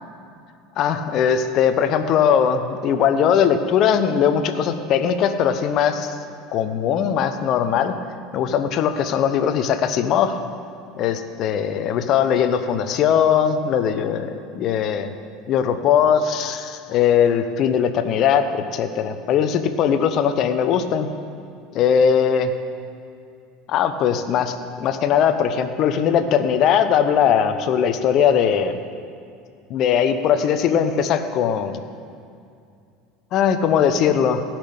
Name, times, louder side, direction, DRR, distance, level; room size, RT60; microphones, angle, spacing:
voice 1, 0.8-6.1 6.5-8.0 8.3-10.4 11.0-15.1 15.5-21.1 21.7-22.5 23.7-28.8 29.7-31.8 33.3-34.4, left 8 dB, 45° left, 9 dB, 0.9 m, -20 dB
16.5 x 6.1 x 8.7 m, 2.4 s
figure-of-eight pair, 70°, 0 cm